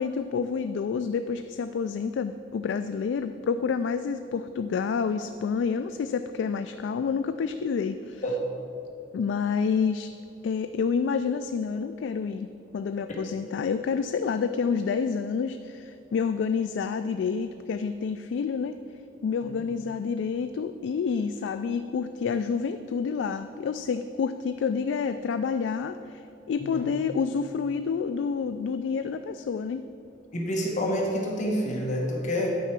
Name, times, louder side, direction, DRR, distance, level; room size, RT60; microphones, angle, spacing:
voice 1, 0.0-8.2 9.1-10.1 10.4-18.8 19.2-29.8, left 6 dB, 75° left, 9 dB, 0.3 m, -28 dB
voice 2, 30.3-32.5, equal, 45° left, -1 dB, 1.1 m, -28 dB
9.3 x 4.6 x 7.3 m, 2.8 s
head